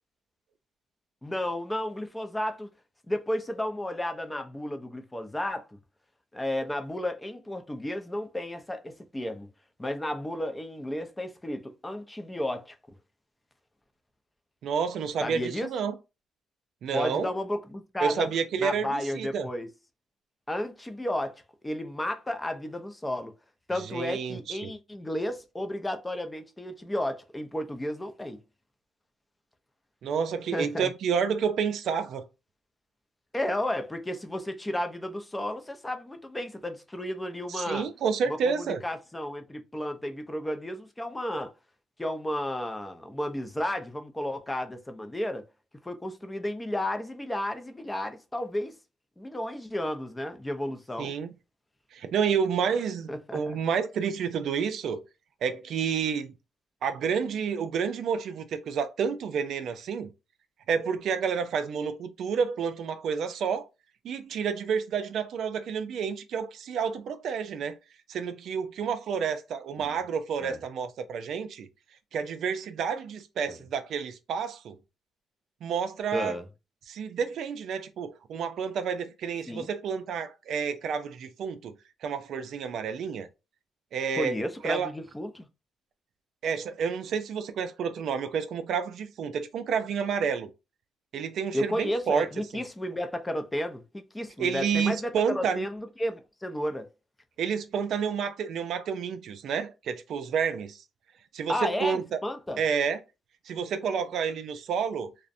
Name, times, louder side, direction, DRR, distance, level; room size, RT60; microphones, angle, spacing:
voice 1, 1.2-2.7 3.1-5.6 6.3-9.5 9.8-12.7 15.2-15.7 16.9-18.3 18.6-19.7 20.5-23.3 23.7-28.4 30.5-30.9 33.3-37.9 38.3-41.5 42.0-45.4 45.8-48.7 49.2-51.1 53.1-53.6 69.8-69.9 70.4-70.6 73.5-73.6 76.1-76.5 79.5-79.7 84.1-85.5 91.5-96.9 101.5-102.6, left 1 dB, 15° left, 0.4 m, -33 dB
voice 2, 14.6-15.9 16.8-17.3 18.0-19.5 23.9-24.7 30.0-32.3 37.5-38.8 51.0-51.3 51.9-55.0 55.4-56.3 56.8-60.1 60.7-63.7 64.0-67.8 68.1-71.7 72.1-74.8 75.6-76.4 76.9-81.7 82.0-83.3 83.9-84.3 84.6-84.9 86.4-90.5 91.1-92.3 94.4-95.7 97.4-100.8 101.3-102.2 102.6-103.0 103.5-105.1, right 6 dB, 70° right, 0.3 m, -30 dB
2.5 x 2.0 x 2.5 m
cardioid pair, 90°, 0 cm